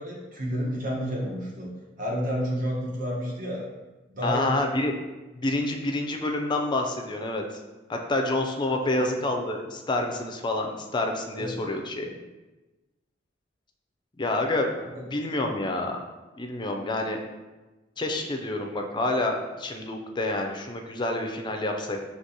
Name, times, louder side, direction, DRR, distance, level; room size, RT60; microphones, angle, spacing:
voice 1, 0.0-1.7 2.0-3.6 4.1-4.7 8.8-9.0 11.3-11.6 14.8-15.0, equal, 45° right, -4 dB, 1.2 m, -30 dB
voice 2, 4.2-4.9 5.3-7.4 7.9-12.1 14.2-14.7 14.9-16.0 16.4-17.2 18.0-22.0, left 2 dB, 25° left, 3 dB, 0.4 m, -28 dB
6.0 x 2.9 x 2.8 m, 1.1 s
head